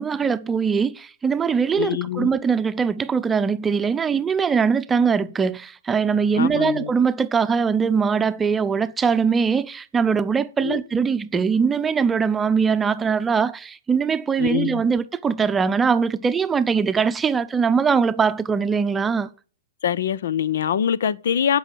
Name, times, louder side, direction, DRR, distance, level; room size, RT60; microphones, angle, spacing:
voice 1, 0.0-19.3, right 6 dB, 15° right, 0.7 m, -21 dB
voice 2, 1.8-2.3 6.4-6.9 10.6-10.8 14.4-14.8 19.8-21.6, left 9 dB, 65° left, 0.6 m, -24 dB
11.0 x 5.5 x 7.5 m
figure-of-eight pair, 110°, 0 cm